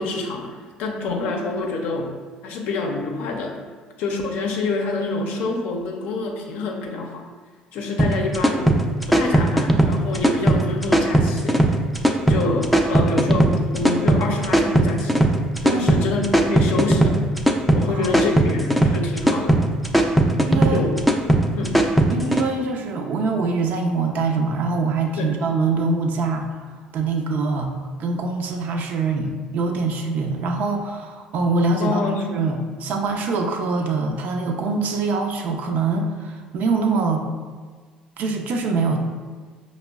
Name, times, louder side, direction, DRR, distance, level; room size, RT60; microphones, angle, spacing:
voice 1, 0.0-2.2 2.4-3.6 4.0-7.2 7.7-8.7 9.1-11.8 12.3-15.2 15.6-17.2 17.7-19.6 20.7-20.9 21.6-21.8 25.2-25.4 31.8-32.6, left 3 dB, 70° left, 1 dB, 0.5 m, -27 dB
sound 1, 8.0-22.4, right 1 dB, ahead, 0.3 m, -18 dB
voice 2, 15.6-16.1 17.9-18.1 20.1-20.9 22.1-26.5 26.9-27.7 28.0-32.0 32.3-37.2 38.2-39.0, right 3 dB, 60° right, 3 dB, 0.4 m, -24 dB
5.0 x 2.0 x 2.2 m, 1.5 s
supercardioid pair, 70°, 3 cm